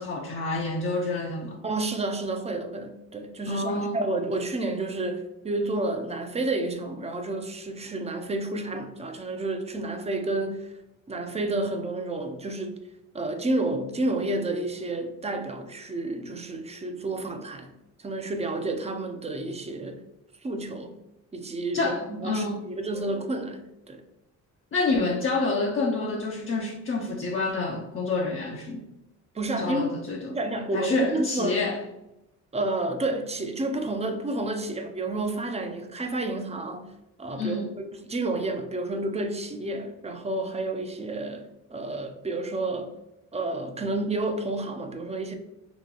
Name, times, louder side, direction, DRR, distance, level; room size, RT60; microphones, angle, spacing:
voice 1, 0.0-1.6 3.5-4.0 21.7-22.7 24.7-28.8 29.6-30.4 30.7-31.8 37.4-37.7, left 3 dB, 45° left, 0.6 m, -28 dB
voice 2, 1.6-10.8 11.1-12.8 13.1-17.7 18.0-20.0 20.4-20.9 21.3-24.0 29.3-29.9 30.3-31.7 32.5-36.9 37.2-42.9 43.3-45.3, right 2 dB, 20° right, 0.5 m, -30 dB
2.9 x 2.8 x 3.8 m
cardioid pair, 90°, 30 cm